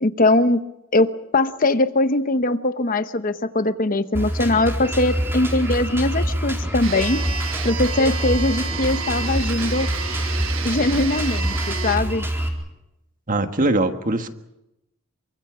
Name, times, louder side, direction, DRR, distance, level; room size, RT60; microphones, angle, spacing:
voice 1, 0.0-0.6 0.9-7.2 7.6-9.9 10.6-12.3, left 2 dB, 40° left, 10 dB, 0.9 m, -21 dB
Drum kit, 4.1-12.5, equal, 10° right, 4.2 m, -26 dB
sound 1, 6.8-12.0, right 7 dB, 60° right, 1.3 m, -31 dB
voice 2, 13.3-14.3, right 2 dB, 35° right, 7 dB, 1.6 m, -21 dB
28.0 x 24.5 x 6.2 m, 0.91 s
head